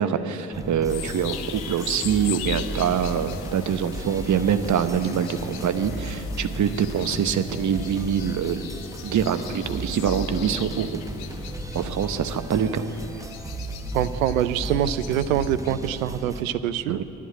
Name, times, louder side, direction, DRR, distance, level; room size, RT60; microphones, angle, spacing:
voice 1, 0.0-8.7 9.0-11.0 11.7-12.8 16.9-17.0, right 8 dB, 45° right, 9 dB, 0.9 m, -25 dB
sound 1, 0.5-16.4, right 1 dB, 10° right, 1.2 m, -35 dB
sound 2, 0.9-16.0, left 11 dB, 65° left, 0.7 m, -40 dB
voice 2, 13.9-17.0, right 10 dB, 85° right, 13 dB, 0.5 m, -24 dB
11.0 x 11.0 x 8.8 m, 2.9 s
figure-of-eight pair, 40°, 40 cm